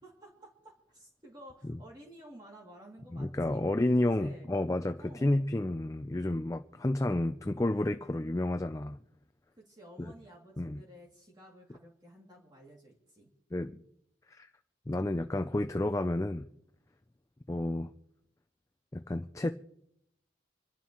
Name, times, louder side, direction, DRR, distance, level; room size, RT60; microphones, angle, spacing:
voice 1, 0.0-4.5 5.0-5.5 9.6-13.3, right 1 dB, 20° right, 2.5 m, -53 dB
voice 2, 3.1-9.0 10.6-10.8 13.5-13.8 14.3-14.5 14.9-16.5 17.5-17.9 18.9-19.5, left 1 dB, 15° left, 0.4 m, -30 dB
27.0 x 11.5 x 3.0 m
head